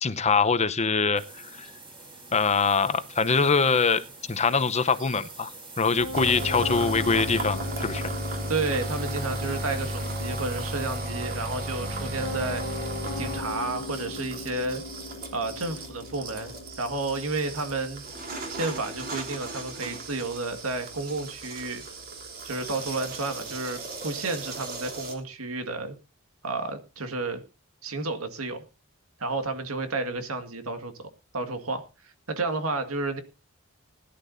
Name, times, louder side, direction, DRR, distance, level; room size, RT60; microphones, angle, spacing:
voice 1, 0.0-1.7 2.3-4.0 4.3-5.5 5.8-8.1, left 5 dB, 30° left, 12 dB, 0.8 m, -23 dB
sound 1, 1.2-11.0, right 3 dB, 25° right, 5.0 m, -45 dB
Piano, 6.0-23.1, left 3 dB, 70° left, 1.3 m, -41 dB
sound 2, 6.1-25.1, right 1 dB, 45° right, 3.3 m, -35 dB
voice 2, 8.5-12.6 13.2-14.8 15.3-18.0 18.5-21.9 22.4-26.0 26.4-27.4 27.8-28.6 29.2-31.1 31.3-33.2, right 3 dB, 85° right, 7 dB, 1.9 m, -31 dB
20.5 x 11.5 x 2.7 m, 0.29 s
head